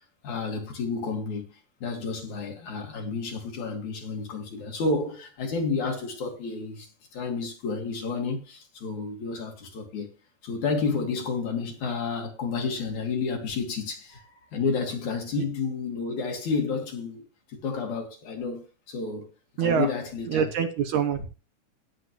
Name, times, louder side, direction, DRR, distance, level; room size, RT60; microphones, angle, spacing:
voice 1, 0.2-10.1 10.4-17.2 17.5-19.3 19.6-20.5, left 4 dB, 60° left, 3.4 m, -31 dB
voice 2, 19.6-19.9 20.3-21.2, right 7 dB, 70° right, 2.4 m, -25 dB
18.0 x 7.5 x 3.2 m
omnidirectional pair, 3.9 m